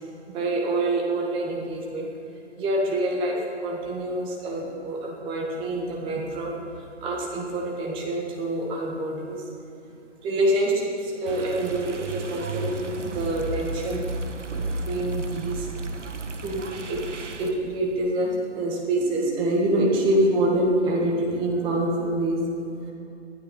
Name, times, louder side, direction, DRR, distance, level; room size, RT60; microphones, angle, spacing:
voice 1, 0.3-2.1 2.6-6.5 7.0-9.4 10.2-14.0 14.9-15.7 16.4-17.0 17.4-22.4, right 1 dB, 15° right, -1 dB, 1.8 m, -26 dB
sound 1, 11.3-17.5, right 2 dB, 85° right, 1.7 m, -33 dB
20.0 x 12.0 x 5.5 m, 2.8 s
hypercardioid pair, 150°, 35 cm